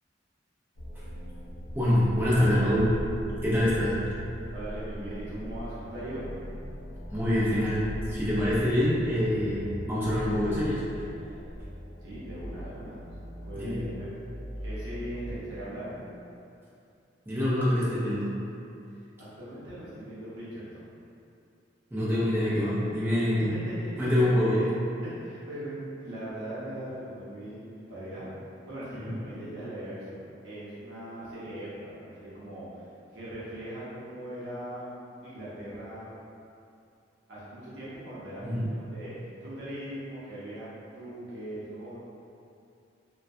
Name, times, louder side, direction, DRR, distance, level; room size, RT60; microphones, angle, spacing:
sound 1, 0.8-16.3, equal, 50° left, 0.5 m, -40 dB
voice 1, 1.7-2.9 3.4-4.0 7.1-7.8 8.1-10.8 13.5-13.8 17.3-18.3 21.9-23.5 24.0-24.6 29.0-29.2 38.4-38.7, left 1 dB, 10° right, -9 dB, 0.5 m, -25 dB
voice 2, 4.5-6.2 12.0-13.0 13.4-14.1 14.6-15.9 19.2-20.9 23.6-24.7 25.0-28.3 28.7-34.9 35.2-36.2 37.3-39.1 39.4-42.0, right 1 dB, 65° right, -11 dB, 0.8 m, -40 dB
2.3 x 2.1 x 2.6 m, 2.5 s
head